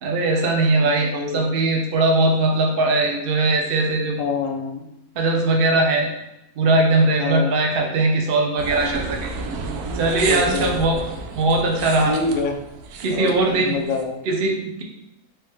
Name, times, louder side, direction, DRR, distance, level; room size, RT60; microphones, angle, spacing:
voice 1, 0.0-4.1 5.2-6.1 6.6-9.3 9.9-11.0 11.4-12.1 13.0-13.7 14.3-14.8, right 2 dB, 55° right, 1 dB, 0.6 m, -20 dB
voice 2, 1.1-1.5 4.2-4.9 7.2-7.5 10.3-10.8 12.0-12.6 13.1-14.2, left 4 dB, 70° left, 4 dB, 0.9 m, -26 dB
sound 1, 8.6-14.0, right 3 dB, 80° right, 1.1 m, -31 dB
4.4 x 3.4 x 3.2 m, 0.90 s
omnidirectional pair, 1.7 m